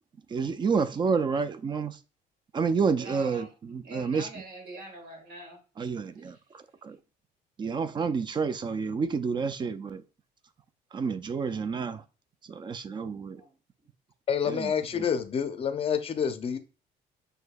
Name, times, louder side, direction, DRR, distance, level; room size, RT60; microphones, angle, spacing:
voice 1, 0.3-2.0 2.5-4.3 5.8-7.0 7.6-10.0 10.9-12.0 12.4-13.4 14.5-15.0, right 5 dB, 25° right, 0.4 m, -29 dB
voice 2, 3.0-3.5 3.8-5.6 6.2-6.4 13.3-13.5, right 1 dB, 75° right, 1.7 m, -44 dB
voice 3, 14.3-16.6, left 7 dB, 35° left, 0.5 m, -28 dB
6.4 x 2.7 x 2.2 m
cardioid pair, 110°, 17 cm